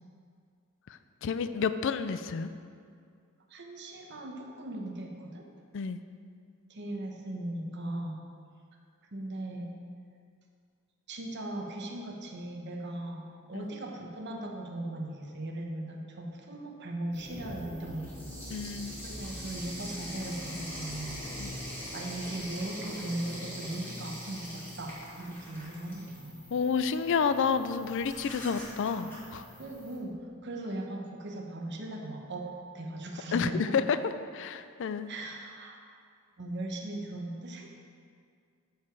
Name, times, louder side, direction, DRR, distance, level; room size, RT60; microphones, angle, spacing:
voice 1, 1.2-2.5 5.7-6.0 13.5-13.7 18.5-19.0 21.4-21.5 26.5-29.4 33.3-35.1, left 6 dB, 60° left, 11 dB, 0.4 m, -30 dB
voice 2, 3.5-5.5 6.7-8.2 9.1-9.7 11.1-18.3 18.5-18.7 19.0-21.3 21.9-26.4 29.6-33.8 35.1-35.8 36.4-37.7, right 1 dB, 55° right, 1 dB, 1.1 m, -38 dB
sound 1, 17.1-30.0, equal, 10° left, 2.3 m, -42 dB
13.0 x 4.8 x 4.7 m, 2.2 s
head